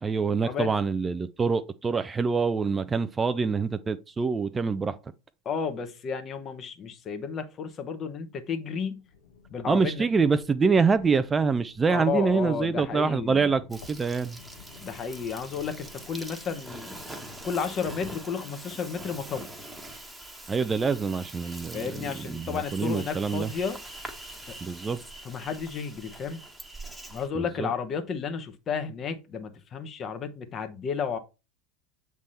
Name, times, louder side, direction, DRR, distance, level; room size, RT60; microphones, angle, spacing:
voice 1, 0.0-4.9 9.7-14.4 20.5-23.5 24.6-25.0 27.3-27.7, right 5 dB, 20° right, 0.4 m, -25 dB
voice 2, 5.4-9.0 9.5-10.1 11.9-13.5 14.8-17.0 17.4-19.5 21.7-23.8 24.5-24.6 25.2-26.4 27.1-31.2, left 6 dB, 35° left, 1.1 m, -32 dB
sound 1, 8.9-18.1, left 5 dB, 75° left, 1.3 m, -53 dB
Insect, 13.7-27.3, right 1 dB, 5° right, 1.2 m, -43 dB
7.4 x 3.6 x 4.1 m
hypercardioid pair, 80°, 0 cm